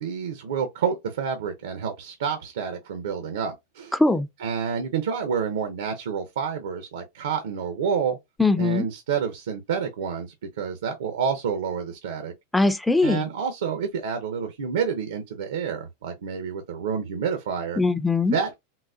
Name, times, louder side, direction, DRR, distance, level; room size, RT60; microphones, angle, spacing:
voice 1, 0.0-3.9 4.4-8.2 8.6-12.3 13.0-17.8 18.2-18.6, right 6 dB, 85° right, 0.6 m, -28 dB
voice 2, 3.9-4.3 8.4-8.9 12.5-13.2 17.8-18.4, left 3 dB, 5° left, 0.3 m, -21 dB
3.8 x 2.1 x 2.3 m
supercardioid pair, 125°, 0 cm